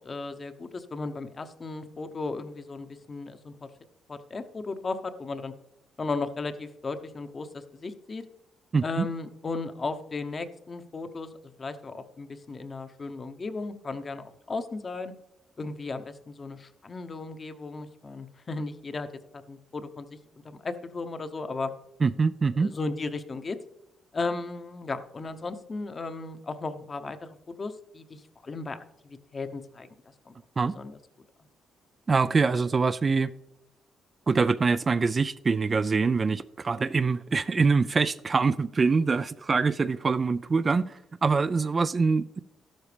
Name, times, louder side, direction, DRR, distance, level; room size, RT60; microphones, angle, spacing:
voice 1, 0.0-3.7 4.1-5.5 6.0-8.2 8.8-15.1 15.6-19.1 19.3-20.2 20.4-21.7 22.5-23.6 24.1-28.8 29.0-29.9 30.3-30.4 30.7-31.0, left 3 dB, 35° left, 0.8 m, -35 dB
voice 2, 8.7-9.1 22.0-22.7 30.6-30.7 32.1-33.3 34.3-42.4, right 4 dB, 35° right, 0.3 m, -24 dB
12.5 x 11.5 x 3.4 m
cardioid pair, 90°, 0 cm